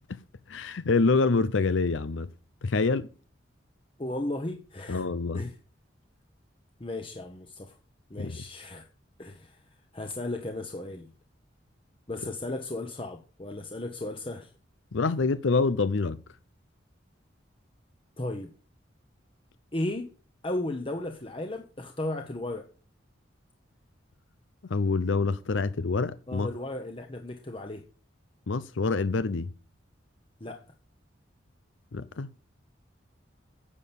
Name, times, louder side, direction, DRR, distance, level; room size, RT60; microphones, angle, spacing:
voice 1, 0.5-2.3 2.6-3.1 4.9-5.4 8.2-8.4 14.9-16.2 24.7-26.5 28.5-29.5 31.9-32.3, left 4 dB, 85° left, 0.6 m, -26 dB
voice 2, 4.0-5.0 5.3-5.5 6.8-7.8 8.1-8.9 9.2-9.6 9.9-11.1 12.1-14.5 18.2-18.5 19.7-20.1 20.4-22.7 26.3-27.8 30.4-30.6, left 1 dB, 30° left, 1.1 m, -35 dB
9.9 x 7.3 x 6.9 m
head